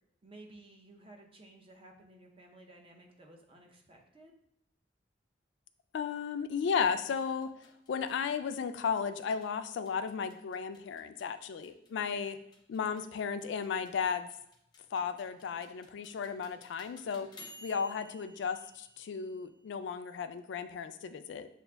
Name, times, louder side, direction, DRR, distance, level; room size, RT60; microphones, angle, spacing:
voice 1, 0.2-4.3, right 2 dB, 30° right, 0 dB, 0.6 m, -55 dB
voice 2, 5.9-7.5 7.9-12.4 12.7-14.3 14.9-17.3 17.6-21.5, left 6 dB, 75° left, 11 dB, 0.3 m, -34 dB
sound 1, 7.2-19.8, equal, 25° left, 0.6 m, -57 dB
6.9 x 2.5 x 2.2 m, 0.77 s
head